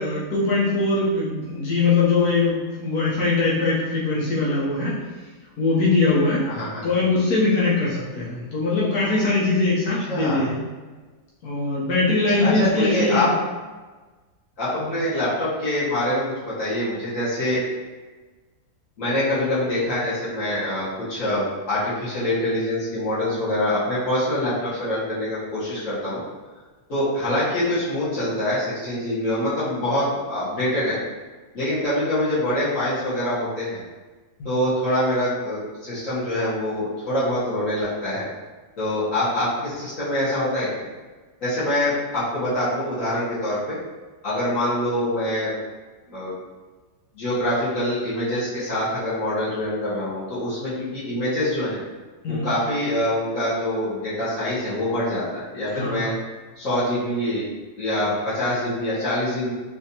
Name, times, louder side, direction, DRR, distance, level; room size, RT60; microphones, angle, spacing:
voice 1, 0.0-5.0 5.6-6.4 6.8-10.6 11.4-13.3 14.8-14.9 34.4-34.5 52.2-52.5 55.8-56.1, left 3 dB, 70° left, -7 dB, 1.2 m, -21 dB
voice 2, 6.5-6.9 10.1-10.4 12.3-13.3 14.6-17.6 19.0-26.2 26.9-31.0 31.5-33.8 34.4-38.3 38.8-40.9 41.4-43.8 44.2-45.5 46.1-46.3 47.1-51.8 52.3-56.1 56.6-57.5 57.8-59.5, left 1 dB, 50° left, -11 dB, 1.7 m, -25 dB
4.1 x 2.6 x 2.8 m, 1.3 s
omnidirectional pair, 1.8 m